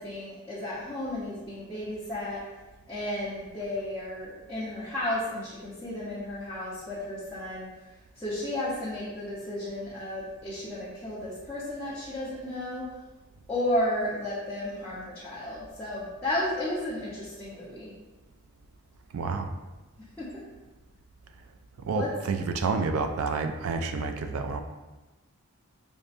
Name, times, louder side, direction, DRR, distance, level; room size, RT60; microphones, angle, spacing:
voice 1, 0.0-2.4 2.9-7.7 8.2-12.9 13.5-17.9 20.2-20.4 21.9-22.1, left 1 dB, 10° left, -11 dB, 0.7 m, -33 dB
voice 2, 19.1-19.5 21.8-24.6, right 4 dB, 85° right, 6 dB, 0.4 m, -29 dB
5.2 x 2.1 x 2.5 m, 1.1 s
head